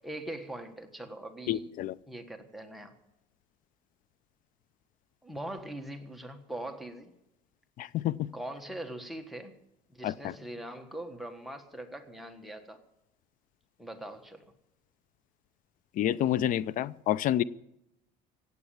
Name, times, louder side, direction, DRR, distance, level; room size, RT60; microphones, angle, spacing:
voice 1, 0.0-1.7 2.1-3.0 5.2-7.1 8.3-9.6 9.9-12.8 13.8-14.4, right 1 dB, ahead, 8 dB, 1.3 m, -41 dB
voice 2, 1.5-1.9 7.8-8.3 10.0-10.1 16.0-17.4, left 12 dB, 50° left, 20 dB, 0.5 m, -28 dB
16.5 x 8.1 x 8.7 m, 0.85 s
cardioid pair, 135°, 18 cm